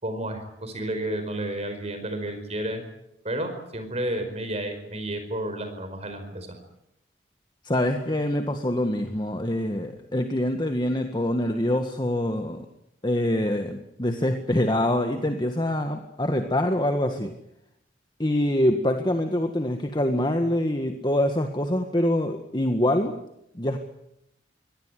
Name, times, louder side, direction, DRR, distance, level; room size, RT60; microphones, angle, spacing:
voice 1, 0.0-2.8 3.2-6.6, right 1 dB, 35° right, 7 dB, 4.9 m, -31 dB
voice 2, 7.6-12.6 13.0-17.3 18.2-23.1 23.5-23.8, left 1 dB, 25° left, 5 dB, 1.7 m, -25 dB
24.0 x 18.0 x 9.9 m, 0.81 s
head